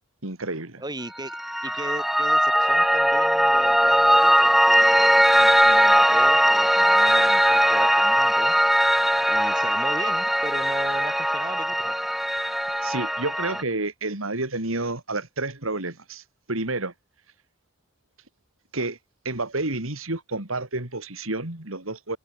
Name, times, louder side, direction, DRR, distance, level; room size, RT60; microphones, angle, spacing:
voice 1, 0.2-0.8 12.8-16.9 18.7-19.0 19.3-22.2, right 2 dB, 80° right, 3.6 m, -30 dB
voice 2, 0.8-1.4 1.6-8.5 9.3-11.9, right 1 dB, 20° right, 7.3 m, -37 dB
Piano, 1.2-13.6, equal, ahead, 1.6 m, -20 dB
head